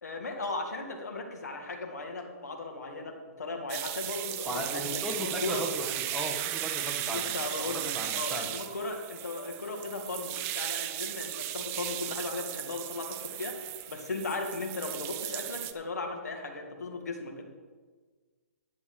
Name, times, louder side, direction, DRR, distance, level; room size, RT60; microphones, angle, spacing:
voice 1, 0.0-5.6 7.1-17.5, left 3 dB, 85° left, 3 dB, 2.1 m, -37 dB
sound 1, 3.7-15.7, right 13 dB, 25° right, 0.6 m, -36 dB
voice 2, 4.4-7.3 7.6-8.5, equal, ahead, 0 dB, 1.3 m, -36 dB
11.0 x 8.4 x 4.9 m, 1.5 s
hypercardioid pair, 145°, 9 cm